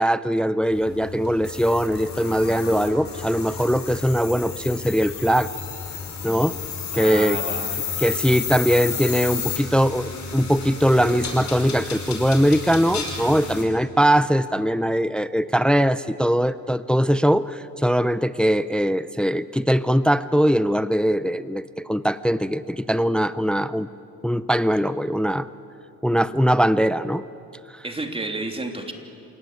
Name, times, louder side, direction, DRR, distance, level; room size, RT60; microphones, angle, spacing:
voice 1, 0.0-5.5 6.2-6.6 6.9-7.4 8.0-23.9 24.2-25.5 26.0-27.2 27.7-27.8, equal, 5° left, 15 dB, 0.6 m, -21 dB
sound 1, 0.7-13.6, left 6 dB, 65° left, 5.2 m, -32 dB
voice 2, 6.9-7.8 27.8-28.9, right 2 dB, 20° right, 4 dB, 3.0 m, -31 dB
27.5 x 17.5 x 9.6 m, 2.7 s
cardioid pair, 90°, 30 cm